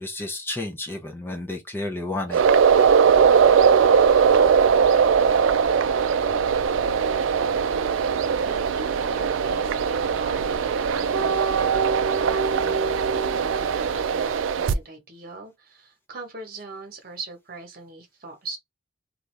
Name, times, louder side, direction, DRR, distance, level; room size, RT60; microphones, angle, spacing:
voice 1, 0.0-2.4, left 2 dB, 10° left, 0.5 m, -31 dB
sound 1, 2.3-14.7, right 6 dB, 80° right, 0.4 m, -20 dB
sound 2, 3.0-14.0, right 1 dB, 60° left, 0.5 m, -45 dB
voice 2, 8.4-10.5 10.9-18.6, right 3 dB, 45° right, 1.1 m, -41 dB
2.7 x 2.4 x 3.1 m
head